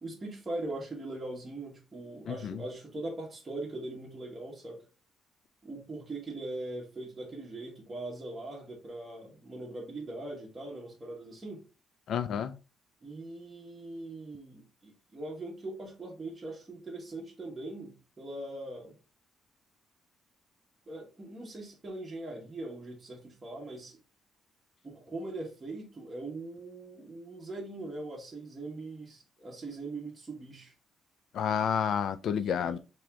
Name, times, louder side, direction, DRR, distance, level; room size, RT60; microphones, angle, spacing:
voice 1, 0.0-4.9 5.6-11.6 13.0-19.0 20.9-24.0 24.8-30.7 32.4-32.8, right 2 dB, 25° right, 1.3 m, -41 dB
voice 2, 2.3-2.6 12.1-12.5 31.3-32.8, left 8 dB, 70° left, 0.4 m, -30 dB
3.1 x 3.0 x 3.4 m
cardioid pair, 90°, 0 cm